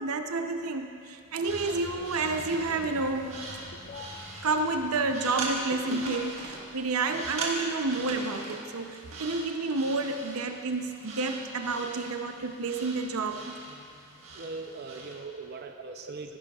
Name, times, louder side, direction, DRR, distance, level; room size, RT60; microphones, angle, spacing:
voice 1, 0.0-3.4 4.4-13.6 16.0-16.1, right 3 dB, 90° right, 6 dB, 0.7 m, -30 dB
sound 1, 1.3-15.2, right 3 dB, 70° right, 1.5 m, -41 dB
sound 2, 1.4-6.3 6.6-6.8, left 4 dB, 35° left, 0.4 m, -45 dB
sound 3, 1.5-7.0, equal, 10° right, 2.0 m, -50 dB
voice 2, 14.3-16.4, right 3 dB, 50° right, 5 dB, 0.5 m, -40 dB
15.0 x 10.0 x 2.4 m, 2.5 s
head